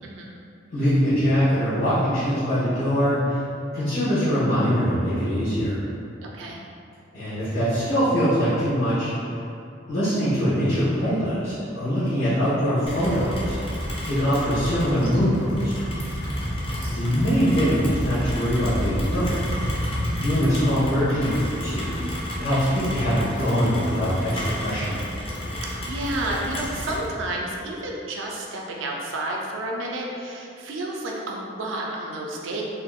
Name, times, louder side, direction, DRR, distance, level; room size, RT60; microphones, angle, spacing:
voice 1, 0.0-0.3 6.2-6.6 16.2-16.5 25.6-32.6, right 1 dB, 85° right, -1 dB, 0.4 m, -31 dB
voice 2, 0.7-3.4 3.7-5.8 7.1-9.1 9.9-13.5 14.0-15.7 16.9-19.4 20.1-24.9, equal, 80° left, -14 dB, 1.0 m, -23 dB
Rain, 12.9-27.1, equal, 30° left, 0.4 m, -30 dB
3.4 x 2.6 x 2.3 m, 2.5 s
head